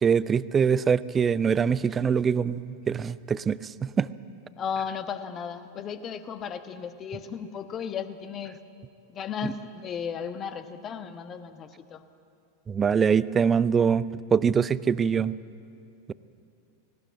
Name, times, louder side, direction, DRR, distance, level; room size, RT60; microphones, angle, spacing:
voice 1, 0.0-4.1 12.7-15.3, right 6 dB, 20° right, 18 dB, 0.5 m, -23 dB
voice 2, 4.6-8.6 9.1-12.0, left 7 dB, 30° left, 10 dB, 1.2 m, -35 dB
18.5 x 18.5 x 8.3 m, 2.5 s
figure-of-eight pair, 90°, 0 cm